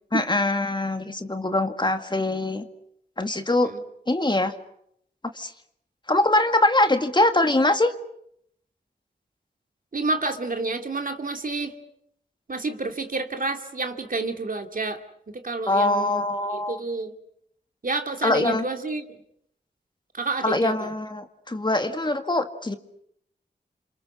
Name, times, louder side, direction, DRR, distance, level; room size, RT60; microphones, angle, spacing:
voice 1, 0.1-2.7 3.2-3.7 4.1-4.5 5.3-5.5 6.1-7.9 15.7-16.8 18.2-18.7 20.4-22.8, left 2 dB, 25° left, 7 dB, 2.0 m, -23 dB
voice 2, 9.9-11.7 12.5-15.0 15.3-16.2 16.5-17.1 17.8-19.2 20.1-20.9, right 3 dB, 55° right, 5 dB, 2.6 m, -29 dB
29.5 x 27.0 x 6.3 m, 0.72 s
wide cardioid pair, 65°, 17 cm